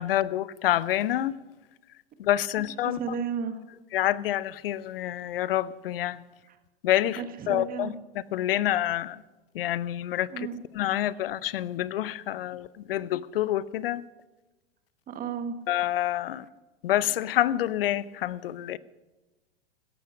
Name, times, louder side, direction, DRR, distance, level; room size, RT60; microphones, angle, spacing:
voice 1, 0.0-1.4 2.2-3.0 3.9-6.2 6.8-7.9 8.3-9.2 9.5-10.5 10.7-14.0 15.7-16.5 16.8-18.8, left 13 dB, 65° left, 0.8 m, -27 dB
voice 2, 2.8-3.6 6.5-6.6 7.2-7.9 10.3-10.6 15.1-15.6, right 6 dB, 30° right, 1.6 m, -33 dB
16.5 x 14.0 x 5.2 m
hypercardioid pair, 105°, 31 cm